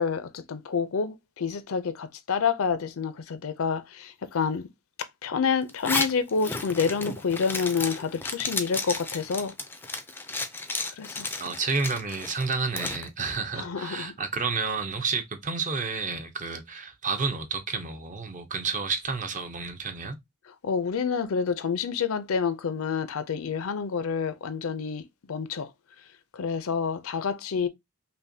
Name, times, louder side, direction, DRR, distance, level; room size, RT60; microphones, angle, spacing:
voice 1, 0.0-4.7 5.2-9.5 11.0-11.3 13.6-14.1 20.5-25.7 26.3-27.7, left 6 dB, 65° left, 0.5 m, -28 dB
Zipper (clothing), 5.7-13.0, left 3 dB, 10° left, 0.4 m, -33 dB
voice 2, 11.4-20.2, right 4 dB, 35° right, 0.7 m, -30 dB
5.4 x 2.2 x 2.7 m
head